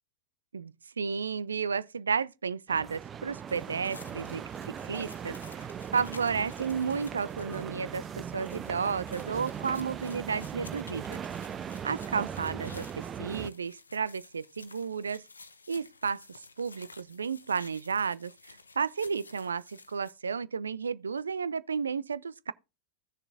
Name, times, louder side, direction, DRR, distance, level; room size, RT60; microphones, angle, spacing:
voice 1, 0.5-4.4 4.8-11.2 11.8-15.2 15.7-22.5, right 6 dB, 75° right, 0.4 m, -32 dB
sound 1, 2.7-13.5, right 8 dB, 25° right, 0.5 m, -39 dB
sound 2, 3.5-20.1, left 4 dB, 75° left, 0.8 m, -53 dB
15.5 x 6.8 x 2.6 m
figure-of-eight pair, 90°, 0 cm